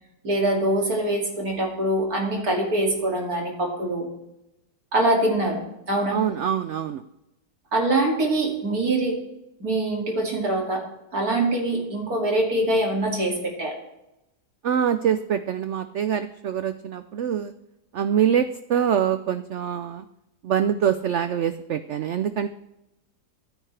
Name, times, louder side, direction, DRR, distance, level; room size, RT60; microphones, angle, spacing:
voice 1, 0.2-4.1 4.9-6.2 7.7-9.2 9.6-10.9 11.1-13.8, right 1 dB, 55° right, 0 dB, 3.1 m, -24 dB
voice 2, 6.1-7.0 14.6-17.5 17.9-20.0 20.4-22.5, right 9 dB, 75° right, 10 dB, 0.6 m, -24 dB
24.5 x 9.4 x 3.4 m, 0.90 s
omnidirectional pair, 1.8 m